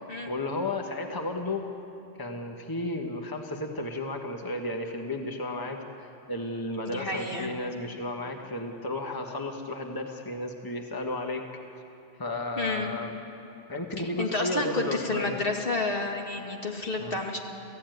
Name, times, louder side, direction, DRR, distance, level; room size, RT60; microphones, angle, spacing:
voice 1, 0.3-1.7 2.2-11.4 12.2-13.1 13.7-15.4 17.0-17.1, left 2 dB, 20° left, 3 dB, 1.4 m, -33 dB
voice 2, 6.8-7.5 12.6-12.9 14.2-17.4, left 2 dB, 60° left, 1 dB, 2.4 m, -30 dB
28.5 x 15.5 x 9.3 m, 2.9 s
omnidirectional pair, 1.1 m